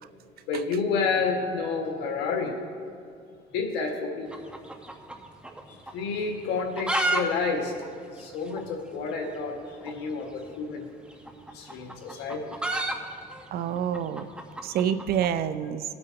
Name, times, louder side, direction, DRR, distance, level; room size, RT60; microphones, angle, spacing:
voice 1, 0.5-2.5 3.5-4.3 5.9-7.7 8.2-9.6 9.8-10.8 11.5-12.4 14.7-14.9, left 4 dB, 90° left, 1 dB, 1.8 m, -29 dB
sound 1, 4.3-5.6 5.9-6.0 6.5-7.2 7.5-7.6 7.8-7.9 8.5-8.6 9.8-10.0 11.1-15.3, right 1 dB, 5° right, 1.0 m, -30 dB
voice 2, 13.5-14.3 14.6-15.8, right 9 dB, 65° right, 12 dB, 0.6 m, -27 dB
20.5 x 8.5 x 2.9 m, 2.4 s
cardioid pair, 110°, 17 cm